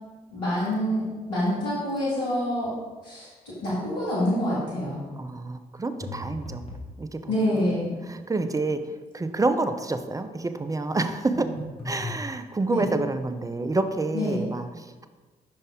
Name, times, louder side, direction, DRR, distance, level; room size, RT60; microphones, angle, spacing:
voice 1, 0.3-2.7 3.0-5.0 7.3-8.0 12.7-12.8 14.1-14.4, left 1 dB, 80° left, -8 dB, 1.8 m, -27 dB
voice 2, 5.2-6.7 7.0-7.7 8.1-8.9 9.1-11.5 11.8-15.1, right 3 dB, 15° right, 9 dB, 0.5 m, -28 dB
sound 1, 6.0-6.9 11.3-12.2, left 1 dB, 30° left, 1.7 m, -36 dB
5.4 x 5.4 x 3.6 m, 1.3 s
hypercardioid pair, 45°, 20 cm